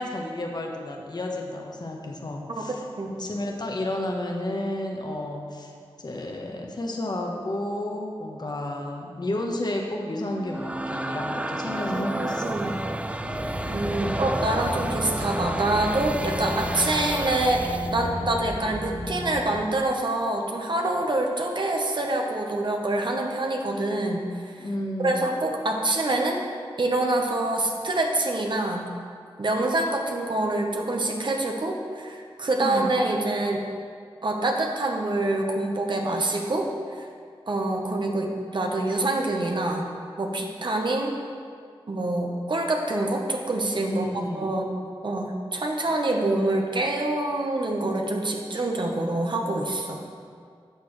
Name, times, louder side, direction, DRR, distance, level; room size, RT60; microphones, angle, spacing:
voice 1, 0.0-2.8 3.2-5.7 6.0-12.6 24.6-25.2 32.6-32.9 43.9-44.5, left 1 dB, 45° left, 1 dB, 1.1 m, -31 dB
voice 2, 2.5-3.1 11.9-12.7 13.7-17.7 17.9-24.7 25.0-26.4 26.8-28.9 29.4-33.6 34.2-36.7 37.5-39.9 40.2-41.1 41.9-44.0 44.3-44.7 45.0-50.0, right 2 dB, 55° right, 1 dB, 1.1 m, -26 dB
sound 1, 10.2-18.0, right 1 dB, 15° right, 0.4 m, -31 dB
sound 2, 13.2-19.4, equal, 75° left, 1.9 m, -33 dB
11.0 x 6.9 x 3.2 m, 2.1 s
cardioid pair, 50°, 10 cm